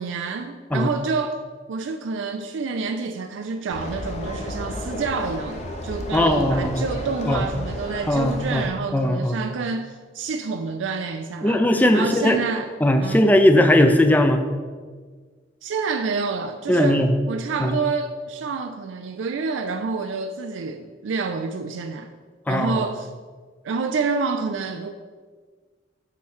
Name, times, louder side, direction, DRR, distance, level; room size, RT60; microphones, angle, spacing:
voice 1, 0.0-1.4 1.7-11.6 11.9-12.7 13.0-13.2 15.6-22.1 22.5-23.1 23.6-24.9, right 4 dB, 85° right, 0.4 m, -28 dB
sound 1, 3.7-8.7, left 1 dB, 35° left, 0.9 m, -33 dB
voice 2, 6.1-6.9 7.3-7.4 8.1-8.6 8.9-9.4 11.4-12.4 12.8-14.4 16.7-17.1 17.6-17.8 22.5-22.8, left 1 dB, 10° left, 0.4 m, -18 dB
8.4 x 3.2 x 6.3 m
head